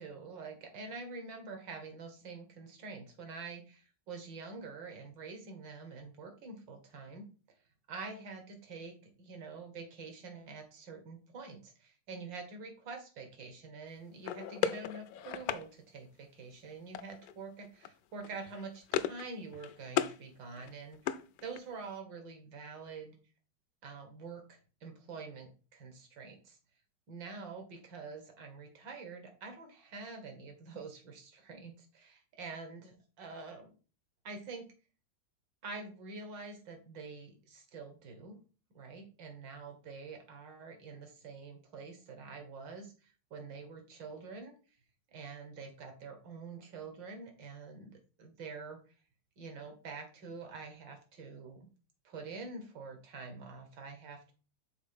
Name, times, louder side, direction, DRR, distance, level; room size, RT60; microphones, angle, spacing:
voice 1, 0.0-7.3 7.9-23.2 23.8-26.6 27.1-33.7 34.2-34.6 35.6-38.4 38.7-44.5 45.1-48.8 49.4-51.7 52.0-54.3, right 4 dB, 80° right, 5 dB, 2.2 m, -46 dB
sound 1, 14.2-15.6 16.9-17.4 17.6-17.9 18.2-19.3 19.5-20.2 20.6-21.8, left 10 dB, 70° left, 0.9 m, -36 dB
6.3 x 3.9 x 5.4 m, 0.36 s
omnidirectional pair, 2.0 m